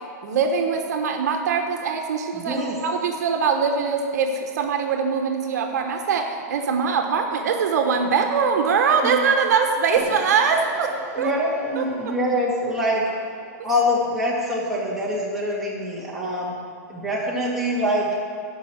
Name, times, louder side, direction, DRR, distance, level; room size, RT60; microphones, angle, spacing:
voice 1, 0.2-11.3 11.8-12.1, right 5 dB, 70° right, 4 dB, 1.1 m, -22 dB
voice 2, 2.3-2.7 9.0-9.1 11.1-13.0 13.6-16.5 16.9-18.1, equal, 5° right, -6 dB, 2.1 m, -24 dB
sound 1, 10.0-16.1, right 3 dB, 20° right, 1.3 m, -41 dB
11.5 x 5.6 x 7.9 m, 2.2 s
supercardioid pair, 155°, 9 cm